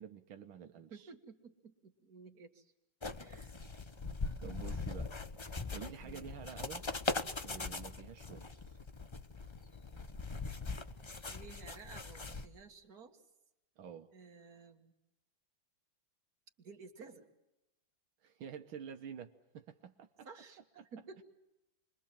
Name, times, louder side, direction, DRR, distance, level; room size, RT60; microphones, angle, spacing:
voice 1, 0.0-1.1 4.4-6.9 7.4-8.8 13.8-14.1 18.2-20.3 20.8-20.9, right 8 dB, 85° right, 6 dB, 1.9 m, -49 dB
voice 2, 0.9-2.7 3.2-3.5 6.0-6.3 11.3-13.2 14.1-14.9 16.6-17.3 20.2-20.6 20.9-21.2, right 4 dB, 50° right, 3 dB, 2.5 m, -54 dB
sound 1, 3.0-12.4, left 3 dB, 35° left, 0.4 m, -41 dB
29.0 x 23.0 x 7.4 m, 0.93 s
omnidirectional pair, 2.2 m